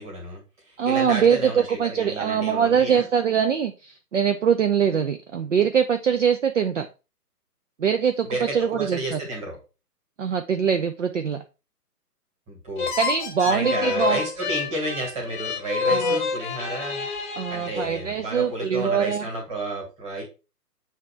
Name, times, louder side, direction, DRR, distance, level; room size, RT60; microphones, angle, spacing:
voice 1, 0.0-3.1 8.3-9.6 12.5-12.9 13.4-17.1 17.5-20.2, right 1 dB, 15° right, -2 dB, 2.0 m, -31 dB
voice 2, 0.8-6.9 7.8-8.3 8.5-9.2 10.2-11.4 12.9-14.2 15.9-16.2 17.4-19.3, right 7 dB, 50° right, 7 dB, 0.5 m, -23 dB
sound 1, 12.8-18.3, left 4 dB, 30° left, 0.9 m, -28 dB
7.4 x 2.9 x 4.4 m, 0.31 s
figure-of-eight pair, 135°, 48 cm